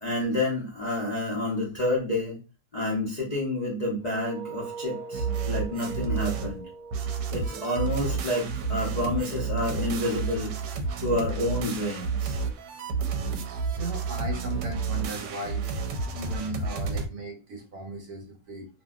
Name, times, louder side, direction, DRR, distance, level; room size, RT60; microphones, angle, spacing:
voice 1, 0.0-2.4 2.7-6.7 7.0-10.8 11.0-12.4, left 1 dB, 80° left, -4 dB, 0.3 m, -29 dB
sound 1, 4.0-8.8, right 4 dB, 30° right, 0.9 m, -42 dB
sound 2, 5.1-6.6 6.9-17.1, right 5 dB, 85° right, 1.2 m, -30 dB
voice 2, 13.7-15.7 16.1-18.7, right 2 dB, 65° right, 1 dB, 1.3 m, -37 dB
2.7 x 2.7 x 2.3 m, 0.32 s
omnidirectional pair, 1.9 m